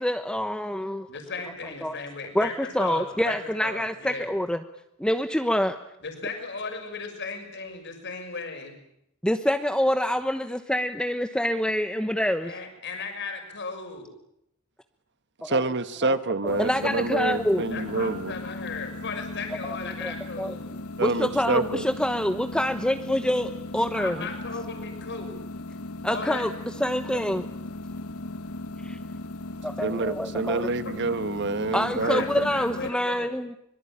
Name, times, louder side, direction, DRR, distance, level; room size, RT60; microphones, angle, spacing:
voice 1, 0.0-1.1 1.8-1.9 2.3-4.6 5.0-5.7 9.2-12.5 15.5-15.7 16.0-16.1 16.4-17.7 20.0-20.5 21.0-24.2 26.0-26.5 26.8-27.5 28.8-29.0 29.6-30.7 31.7-33.6, equal, 5° left, 7 dB, 1.1 m, -26 dB
voice 2, 1.1-4.3 6.0-8.7 12.4-14.1 17.7-20.7 23.9-25.3 26.1-26.4 27.1-27.2 30.8-31.1 32.0-33.3, left 4 dB, 55° left, 5 dB, 6.3 m, -36 dB
voice 3, 15.5-18.3 21.0-21.8 29.8-32.2, right 3 dB, 55° right, 11 dB, 1.5 m, -27 dB
sound 1, 16.5-32.9, left 2 dB, 85° left, 1.3 m, -38 dB
25.0 x 23.0 x 8.8 m, 0.76 s
head